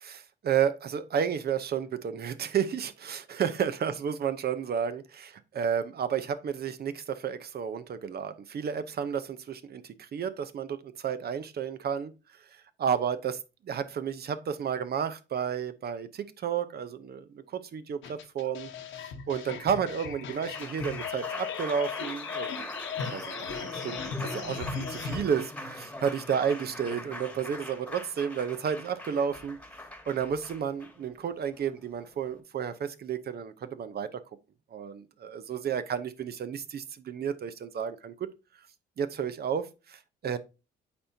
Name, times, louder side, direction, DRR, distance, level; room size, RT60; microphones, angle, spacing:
voice 1, 0.0-12.1 12.4-18.7 19.3-22.7 23.1-29.6 30.1-34.2 34.7-38.3 39.0-40.4, right 7 dB, 55° right, 0.7 m, -32 dB
sound 1, 18.0-25.2, left 6 dB, 75° left, 1.1 m, -37 dB
Applause, 20.3-32.4, left 1 dB, 5° left, 1.4 m, -42 dB
8.5 x 4.4 x 2.7 m
cardioid pair, 90°, 20 cm